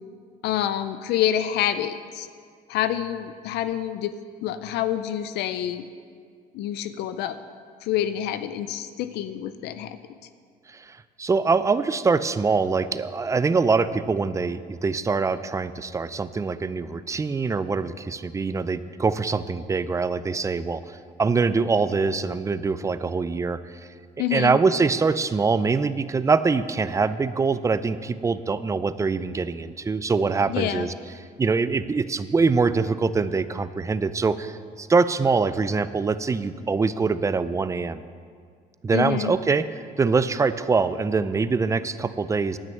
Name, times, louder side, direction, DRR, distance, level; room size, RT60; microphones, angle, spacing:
voice 1, 0.4-2.3 2.7-4.1 4.4-5.8 6.5-7.4 7.8-10.0 24.2-24.6 30.5-30.9 38.9-39.3, left 11 dB, 80° left, 11 dB, 0.5 m, -27 dB
voice 2, 10.7-20.9 21.2-23.6 24.3-30.9 31.4-38.0 38.8-39.7 40.0-42.6, right 4 dB, 20° right, 14 dB, 0.4 m, -24 dB
10.5 x 6.2 x 7.6 m, 2.1 s
cardioid pair, 110°, 17 cm